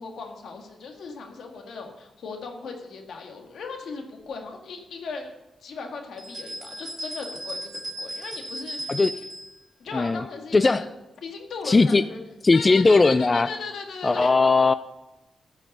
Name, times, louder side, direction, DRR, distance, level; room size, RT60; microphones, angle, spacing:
voice 1, 0.0-5.3 5.6-9.3 9.8-10.9 11.2-12.2 12.5-14.4, left 4 dB, 85° left, 3 dB, 1.7 m, -37 dB
sound 1, 6.2-9.5, right 1 dB, 30° right, 2.8 m, -36 dB
voice 2, 11.7-12.0 12.4-13.5 14.0-14.7, left 3 dB, 30° left, 13 dB, 0.3 m, -18 dB
14.5 x 5.7 x 5.3 m, 1.0 s
cardioid pair, 85°, 0 cm